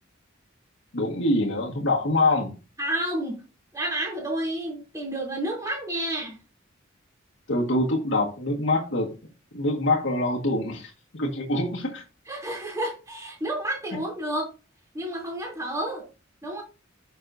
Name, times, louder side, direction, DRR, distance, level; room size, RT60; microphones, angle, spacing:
voice 1, 0.9-2.5 7.5-9.1 9.5-12.0, left 2 dB, 60° left, -1 dB, 1.7 m, -25 dB
voice 2, 2.8-3.4 3.7-6.4 12.2-14.5 14.9-16.0 16.4-16.6, right 1 dB, 15° right, -1 dB, 3.2 m, -30 dB
9.1 x 6.5 x 2.7 m, 0.31 s
head